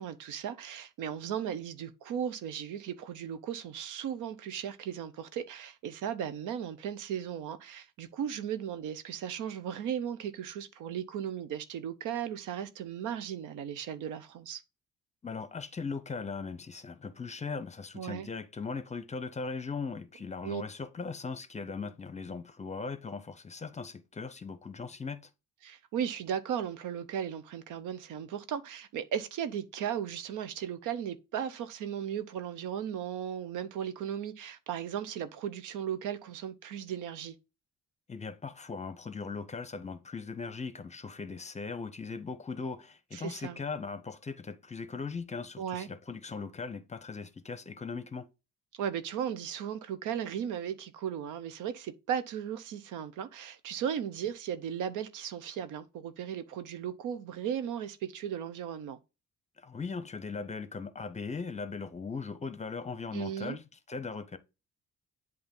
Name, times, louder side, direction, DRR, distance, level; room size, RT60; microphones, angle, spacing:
voice 1, 0.0-14.6 17.9-18.3 20.4-20.6 25.6-37.3 43.1-43.6 45.6-45.9 48.8-59.0 63.1-63.6, right 9 dB, 85° right, 0.7 m, -36 dB
voice 2, 15.2-25.2 38.1-48.3 59.6-64.4, left 4 dB, 25° left, 0.7 m, -39 dB
7.9 x 2.7 x 5.3 m
cardioid pair, 90°, 30 cm